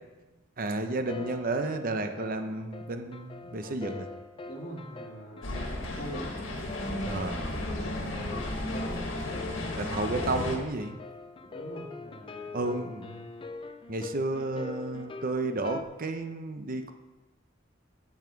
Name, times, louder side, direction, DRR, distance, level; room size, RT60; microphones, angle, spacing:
voice 1, 0.6-4.1 7.0-7.4 9.7-11.0 12.5-13.2 13.9-16.9, right 2 dB, 45° right, 7 dB, 0.9 m, -32 dB
sound 1, 1.1-15.8, left 3 dB, 25° left, 0.6 m, -43 dB
voice 2, 4.4-6.3 7.7-9.1 11.4-13.2, equal, 45° left, -1 dB, 2.2 m, -44 dB
sound 2, 5.4-10.6, left 1 dB, 75° left, 1.7 m, -34 dB
11.0 x 7.3 x 4.7 m, 1.2 s
head